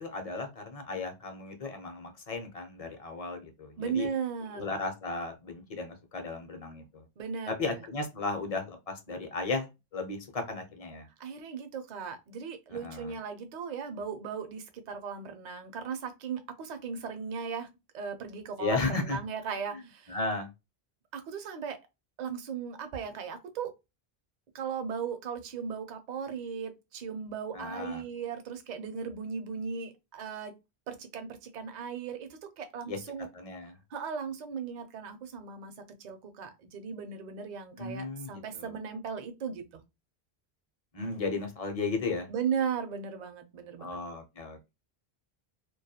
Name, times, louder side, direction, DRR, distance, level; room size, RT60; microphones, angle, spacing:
voice 1, 0.0-4.1 4.6-7.0 7.5-9.7 9.9-11.1 12.7-13.1 18.6-19.2 20.1-20.5 27.5-28.0 32.9-33.0 33.3-33.7 37.8-38.7 40.9-42.3 43.8-44.7, left 3 dB, 45° left, 5 dB, 0.6 m, -35 dB
voice 2, 3.8-4.7 7.2-7.8 11.2-17.7 17.9-20.2 21.1-21.8 22.2-23.7 24.5-30.5 30.9-33.3 33.9-35.7 36.0-39.8 42.3-44.0, right 6 dB, 55° right, 7 dB, 0.6 m, -37 dB
2.3 x 2.2 x 2.7 m, 0.23 s
omnidirectional pair, 1.1 m